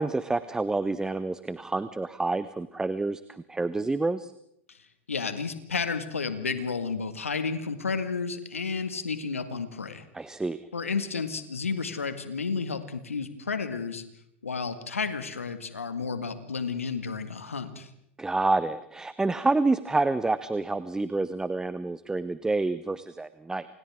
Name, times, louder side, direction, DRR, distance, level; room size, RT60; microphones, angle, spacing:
voice 1, 0.0-3.2 3.5-4.3 10.1-10.6 18.2-23.7, right 3 dB, 10° right, 14 dB, 0.8 m, -28 dB
voice 2, 5.1-10.0 10.7-14.0 14.4-17.9, left 5 dB, 90° left, 9 dB, 2.0 m, -32 dB
29.0 x 27.0 x 3.7 m, 0.76 s
hypercardioid pair, 95°, 7 cm